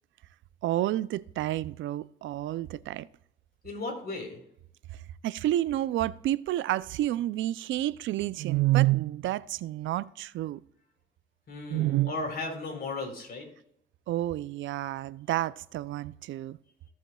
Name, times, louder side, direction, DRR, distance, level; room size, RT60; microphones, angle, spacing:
voice 1, 0.6-3.1 4.9-10.6 11.7-12.1 14.1-16.6, right 15 dB, 75° right, 0.4 m, -29 dB
voice 2, 3.6-4.4 11.5-13.5, left 3 dB, 50° left, 3.7 m, -35 dB
16.5 x 7.1 x 2.3 m
cardioid pair, 90°, 20 cm